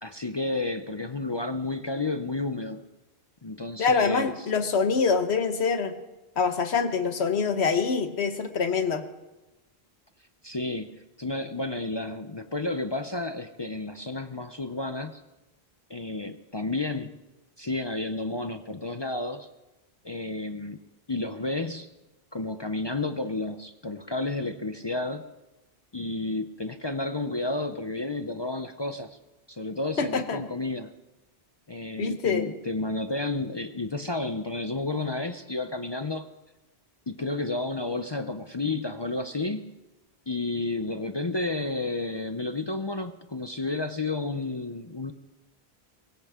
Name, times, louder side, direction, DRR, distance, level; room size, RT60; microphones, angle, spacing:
voice 1, 0.0-2.9 3.4-4.3 10.4-15.2 15.9-17.1 17.6-19.5 20.0-20.8 21.1-21.9 22.3-25.2 25.9-29.2 29.5-30.9 31.7-36.3 37.1-39.7 40.3-45.1, left 2 dB, 30° left, 8 dB, 0.6 m, -31 dB
voice 2, 3.8-5.9 6.4-9.0 30.0-30.4 32.0-32.5, left 5 dB, 85° left, 8 dB, 1.4 m, -25 dB
23.0 x 16.0 x 3.6 m, 1.0 s
omnidirectional pair, 1.1 m